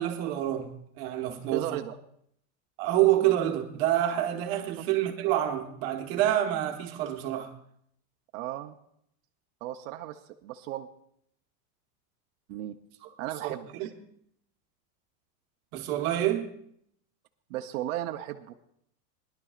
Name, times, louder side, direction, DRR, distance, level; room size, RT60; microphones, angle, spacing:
voice 1, 0.0-1.8 2.8-7.5 13.4-13.9 15.7-16.5, right 12 dB, 40° right, 1.3 m, -27 dB
voice 2, 1.5-1.9 4.8-4.9 8.3-8.7 9.6-10.9 12.5-12.8 13.2-13.9 17.5-18.5, right 13 dB, 60° right, 0.8 m, -35 dB
20.0 x 11.5 x 2.4 m
supercardioid pair, 165°, 45 cm